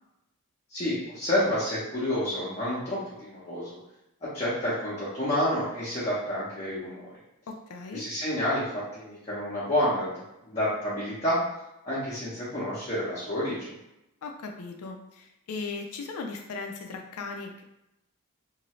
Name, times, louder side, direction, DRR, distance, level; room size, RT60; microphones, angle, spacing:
voice 1, 0.7-3.8 4.2-7.1 7.9-10.1 10.4-11.4 11.8-13.7, left 1 dB, 30° left, -10 dB, 0.9 m, -29 dB
voice 2, 7.5-8.1 14.2-17.6, left 4 dB, 85° left, 3 dB, 0.4 m, -37 dB
2.7 x 2.6 x 3.1 m, 0.89 s
head